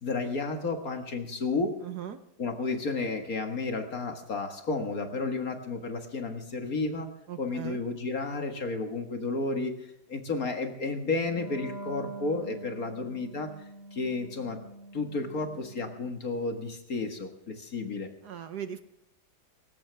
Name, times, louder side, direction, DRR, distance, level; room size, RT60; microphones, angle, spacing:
voice 1, 0.0-1.8 2.4-7.1 7.4-13.5 13.9-14.6 14.9-18.1, left 3 dB, 50° left, 5 dB, 2.0 m, -32 dB
voice 2, 1.8-2.2 7.3-7.8 18.2-18.8, right 9 dB, 60° right, 10 dB, 1.4 m, -38 dB
Wind instrument woodwind instrument, 11.2-16.3, right 2 dB, 10° left, 3.3 m, -44 dB
19.5 x 17.0 x 3.4 m, 0.80 s
omnidirectional pair, 2.1 m